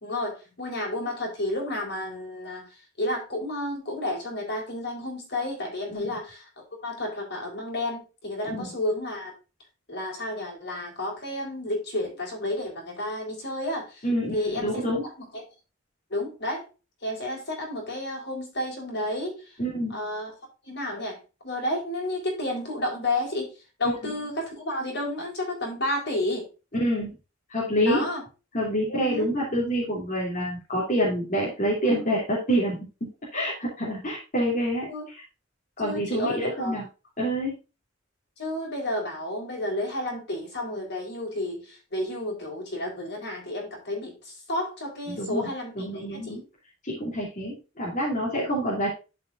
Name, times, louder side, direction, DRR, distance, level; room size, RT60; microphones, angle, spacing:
voice 1, 0.0-2.7 3.0-6.4 6.8-9.3 9.9-14.0 14.3-14.8 15.2-15.4 16.1-16.7 17.0-19.4 19.9-20.3 20.7-21.2 21.4-23.5 23.8-26.4 27.8-28.2 29.0-29.3 34.9-35.0 35.8-36.7 38.4-44.2 44.5-46.4, left 1 dB, 60° left, 1 dB, 4.2 m, -31 dB
voice 2, 14.0-15.1 19.6-20.0 24.0-24.1 26.8-27.1 27.5-28.1 28.5-35.2 35.8-36.8 37.2-37.5 45.1-45.5 45.8-46.4 46.8-48.9, equal, 45° left, -5 dB, 2.9 m, -27 dB
11.5 x 5.7 x 2.5 m, 0.30 s
head